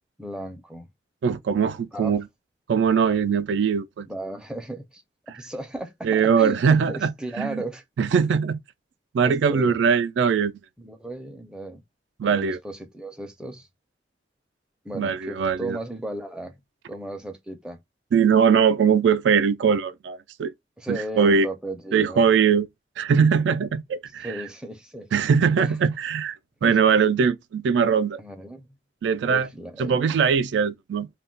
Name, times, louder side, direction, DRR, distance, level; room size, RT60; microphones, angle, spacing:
voice 1, 0.2-0.9 1.9-2.1 4.1-5.0 5.3-7.8 9.2-9.8 10.8-11.8 12.2-13.7 14.8-16.6 16.9-17.8 20.8-22.2 24.2-25.1 25.6-25.8 26.6-26.8 28.2-28.7 29.3-30.2, right 1 dB, 5° right, 0.4 m, -35 dB
voice 2, 1.2-2.2 2.7-4.1 6.0-7.6 8.0-8.6 9.1-10.5 12.2-12.6 14.9-15.8 18.1-20.5 20.9-21.5 21.9-22.7 23.0-24.3 25.1-28.2 29.0-29.5 29.8-31.1, right 6 dB, 80° right, 0.3 m, -21 dB
2.3 x 2.1 x 3.7 m
head